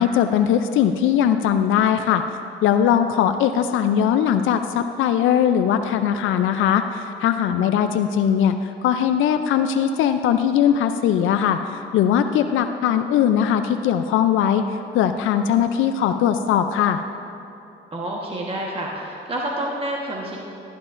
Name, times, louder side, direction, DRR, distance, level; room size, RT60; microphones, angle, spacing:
voice 1, 0.0-2.2 2.6-14.6 14.9-17.0, left 9 dB, 80° left, 8 dB, 0.4 m, -20 dB
voice 2, 7.5-7.9 17.9-20.4, right 1 dB, 30° right, -2 dB, 1.2 m, -29 dB
13.5 x 11.0 x 2.5 m, 2.7 s
cardioid pair, 90°, 20 cm